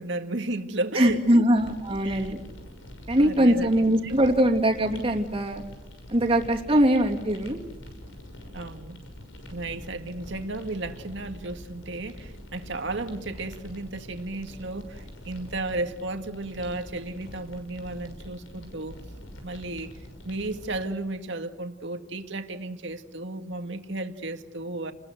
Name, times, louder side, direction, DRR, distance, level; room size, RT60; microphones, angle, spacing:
voice 1, 0.0-1.6 2.0-2.3 3.2-4.1 6.7-6.8 8.5-9.0 9.5-19.0 19.4-19.9 20.2-24.9, right 2 dB, 65° right, 6 dB, 2.0 m, -34 dB
voice 2, 0.9-2.4 3.1-5.6 6.1-7.6, right 1 dB, 30° right, 3 dB, 3.0 m, -22 dB
sound 1, 1.5-20.8, equal, 80° left, 6.4 m, -44 dB
30.0 x 21.0 x 7.9 m, 0.99 s
head